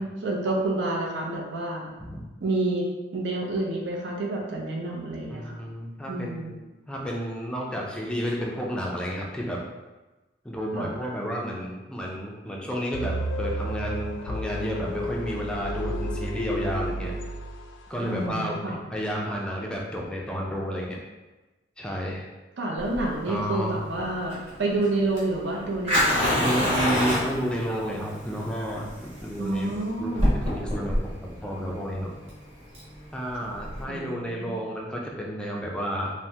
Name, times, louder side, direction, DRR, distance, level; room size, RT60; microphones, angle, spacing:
voice 1, 0.0-1.9 2.4-2.8 3.1-5.6 6.1-6.5 10.7-10.9 18.0-18.8 22.6-27.1 29.4-30.4 33.9-34.6, right 2 dB, 70° right, -1 dB, 0.5 m, -29 dB
voice 2, 5.3-6.6 6.9-9.6 10.4-17.1 17.9-21.0 21.8-22.3 23.3-23.8 26.4-32.1 33.1-36.1, equal, 5° left, -2 dB, 0.3 m, -31 dB
sound 1, 12.9-17.9, equal, 80° left, 0.3 m, -31 dB
Fire, 22.8-33.8, equal, 30° right, 1.0 m, -28 dB
3.3 x 2.1 x 2.7 m, 1.2 s
head